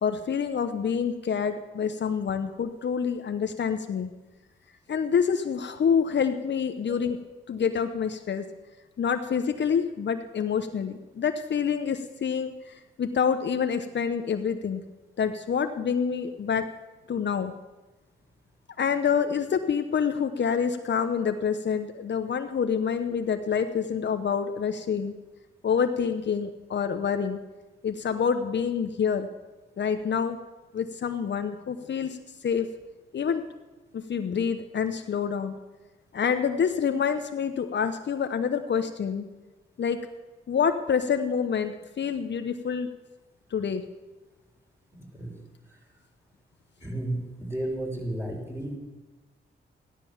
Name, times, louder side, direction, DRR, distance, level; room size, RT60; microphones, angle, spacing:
voice 1, 0.0-4.1 4.9-7.2 7.5-8.4 9.0-14.8 15.2-16.7 17.1-17.5 18.8-25.1 25.6-27.4 27.8-29.3 29.8-30.4 30.7-32.2 32.4-32.7 33.1-33.4 33.9-35.6 36.1-39.2 39.8-40.0 40.5-42.9 43.5-43.8, left 7 dB, 60° left, 7 dB, 1.0 m, -27 dB
voice 2, 44.9-45.4 46.8-48.8, right 1 dB, 10° right, -1 dB, 5.7 m, -33 dB
15.0 x 11.5 x 7.3 m, 1.2 s
cardioid pair, 65°, 21 cm